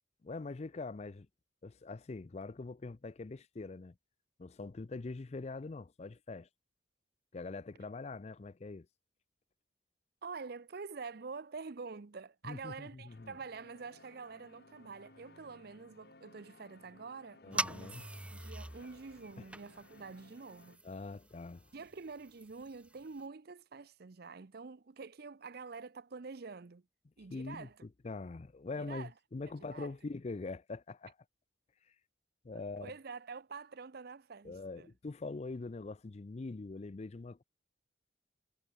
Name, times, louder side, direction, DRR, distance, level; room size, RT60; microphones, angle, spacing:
voice 1, 0.2-1.3 1.6-4.0 4.4-6.5 7.3-8.9 12.4-13.4 17.4-18.0 19.4-19.5 20.8-21.7 27.3-31.2 31.9-32.0 32.4-32.9 34.4-37.4, left 3 dB, 35° left, 0.5 m, -43 dB
voice 2, 10.2-17.9 18.3-20.8 21.7-26.8 27.2-27.7 28.8-29.1 29.6-29.9 32.5-34.9, right 4 dB, 55° right, 0.6 m, -47 dB
sound 1, 13.1-20.8, left 2 dB, 60° left, 3.1 m, -61 dB
sound 2, 17.5-23.3, right 2 dB, 5° right, 0.7 m, -44 dB
head